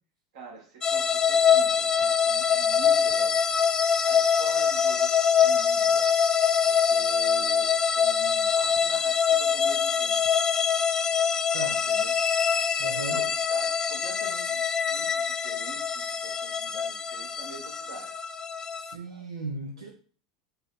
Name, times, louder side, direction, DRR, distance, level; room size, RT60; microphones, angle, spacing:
voice 1, 0.3-3.7 4.0-5.1 5.4-6.2 6.6-10.2 11.7-12.1 13.0-18.1 19.1-19.2, right 3 dB, 65° right, -1 dB, 1.4 m, -45 dB
sound 1, 0.8-18.9, left 7 dB, 25° left, 0.3 m, -24 dB
voice 2, 11.5-11.9 12.8-13.2 18.7-19.9, right 3 dB, 85° right, 1 dB, 0.5 m, -36 dB
4.0 x 2.1 x 3.9 m, 0.42 s
hypercardioid pair, 85°, 3 cm